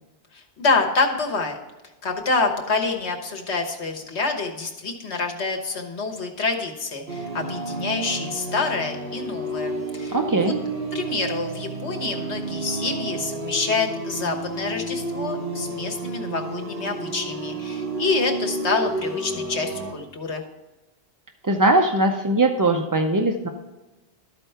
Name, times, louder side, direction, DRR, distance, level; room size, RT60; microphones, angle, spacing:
voice 1, 0.3-1.6 2.0-10.5 10.9-20.4, left 4 dB, 85° left, 2 dB, 1.5 m, -27 dB
sound 1, 7.1-19.9, right 2 dB, 65° right, 1.3 m, -31 dB
voice 2, 10.1-10.6 21.4-23.5, right 2 dB, 35° right, 4 dB, 0.3 m, -20 dB
12.5 x 4.5 x 5.6 m, 1.1 s
omnidirectional pair, 1.1 m